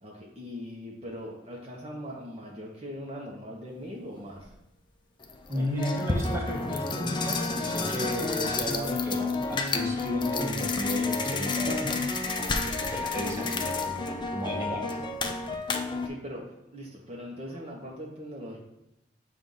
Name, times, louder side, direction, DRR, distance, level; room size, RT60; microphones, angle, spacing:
voice 1, 0.0-4.5 5.5-5.8 15.9-16.5 16.7-18.6, equal, 35° right, -2 dB, 0.8 m, -40 dB
sound 1, 4.4-4.5 5.2-16.1, left 3 dB, 25° left, 0.5 m, -30 dB
voice 2, 5.5-12.0 12.6-15.0, equal, 15° right, -2 dB, 1.1 m, -34 dB
7.6 x 2.5 x 5.4 m, 0.88 s
head